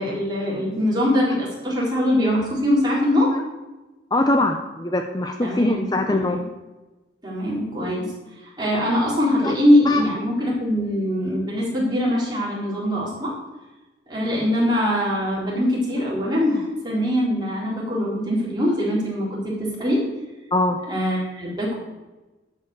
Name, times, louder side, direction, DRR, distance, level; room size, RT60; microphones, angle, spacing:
voice 1, 0.0-3.3 5.4-6.4 7.2-8.1 8.4-13.3 14.1-20.0 20.9-21.7, equal, 25° right, -5 dB, 3.7 m, -22 dB
voice 2, 4.1-6.4 9.4-9.5 9.9-10.0 20.5-20.8, left 2 dB, 20° left, 5 dB, 0.5 m, -22 dB
11.5 x 5.4 x 6.6 m, 1.1 s
head